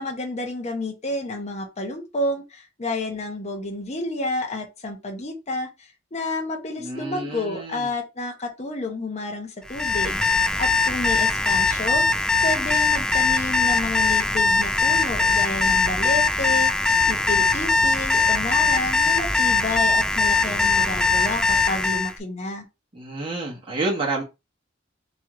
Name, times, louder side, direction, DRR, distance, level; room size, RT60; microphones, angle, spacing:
voice 1, 0.0-12.1 12.4-22.6, left 2 dB, 35° left, 0.8 m, -30 dB
voice 2, 6.8-7.8 22.9-24.2, right 2 dB, 25° right, 1.2 m, -29 dB
Alarm, 9.7-22.1, left 3 dB, 5° left, 0.3 m, -21 dB
3.1 x 3.0 x 3.7 m
head